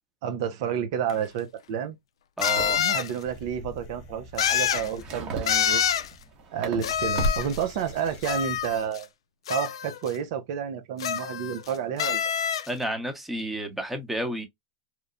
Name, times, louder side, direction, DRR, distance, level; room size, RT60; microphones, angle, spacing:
voice 1, 0.2-2.0 2.8-5.8 6.5-9.1 9.5-12.3, right 8 dB, 60° right, 0.5 m, -30 dB
sound 1, 1.1-1.2 2.4-3.1 4.4-4.9 5.5-6.1 6.8-7.6 8.2-9.0 9.5-10.1 11.0-11.7 12.0-12.7, left 9 dB, 85° left, 0.3 m, -26 dB
voice 2, 2.4-2.8 12.7-14.5, right 1 dB, 5° right, 0.7 m, -31 dB
sound 2, 2.6-2.9 4.4-7.5, right 3 dB, 40° right, 1.0 m, -38 dB
sound 3, 3.2-8.9, left 1 dB, 50° left, 0.9 m, -37 dB
3.0 x 2.1 x 2.4 m
hypercardioid pair, 115°, 3 cm